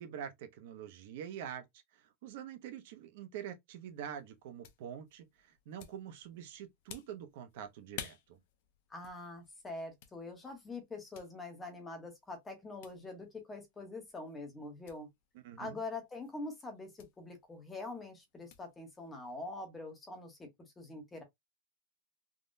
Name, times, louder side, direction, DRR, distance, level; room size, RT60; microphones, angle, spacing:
voice 1, 0.0-1.6 1.9-8.4 15.4-15.8, right 9 dB, 55° right, 0.5 m, -45 dB
sound 1, 3.8-19.4, left 9 dB, 50° left, 0.5 m, -56 dB
voice 2, 8.9-15.1 15.6-20.5 20.8-21.2, left 2 dB, 10° left, 0.8 m, -44 dB
3.6 x 2.1 x 2.5 m
supercardioid pair, 175°, 0 cm